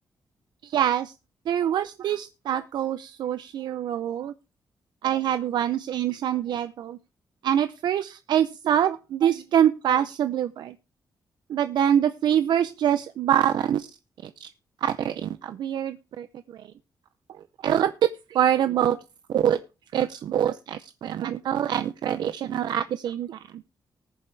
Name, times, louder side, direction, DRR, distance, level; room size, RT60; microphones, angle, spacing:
voice 1, 0.6-1.1 1.5-4.3 5.0-7.0 7.4-10.7 11.5-13.9 14.4-14.5 14.8-16.3 17.6-17.9 18.3-19.0 19.3-19.6 19.9-23.6, right 10 dB, 80° right, 11 dB, 0.6 m, -25 dB
19.5 x 7.1 x 3.4 m, 0.30 s
wide cardioid pair, 140°, 7 cm